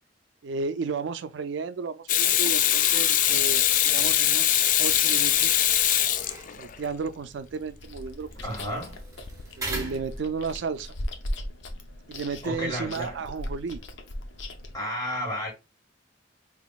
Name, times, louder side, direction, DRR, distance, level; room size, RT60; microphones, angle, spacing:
voice 1, 0.4-5.6 6.6-8.5 9.6-10.9 12.1-13.8, right 5 dB, 75° right, 0.4 m, -33 dB
Water tap faucet / Sink (filling or washing), 2.1-6.9 9.3-9.4, left 11 dB, 45° left, 0.3 m, -22 dB
sound 1, 3.2-10.7, right 2 dB, 20° right, 1.3 m, -42 dB
Chewing mastication, 7.8-14.7, left 1 dB, 90° left, 0.7 m, -38 dB
voice 2, 8.4-9.0 12.4-13.2 14.7-15.5, equal, 20° left, 2.2 m, -32 dB
5.1 x 2.9 x 2.3 m
head